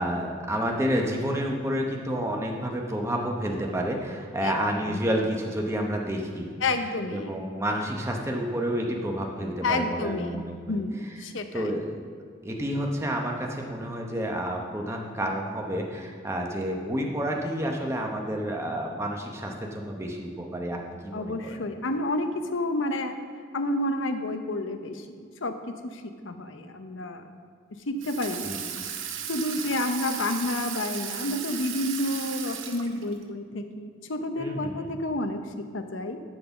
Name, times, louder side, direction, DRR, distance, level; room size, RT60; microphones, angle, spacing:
voice 1, 0.0-6.5 7.1-10.8 11.1-11.2 11.5-11.9 12.4-21.6 28.4-28.6 34.4-34.9, equal, 15° right, 0 dB, 0.8 m, -30 dB
voice 2, 6.6-7.3 9.6-10.4 10.7-11.7 21.1-23.2 23.5-27.2 27.9-28.8 29.3-36.2, left 2 dB, 80° left, 7 dB, 0.8 m, -30 dB
Water tap faucet / Sink (filling or washing), 28.0-33.2, right 8 dB, 80° right, 0.8 m, -35 dB
12.0 x 4.0 x 7.0 m, 2.1 s
head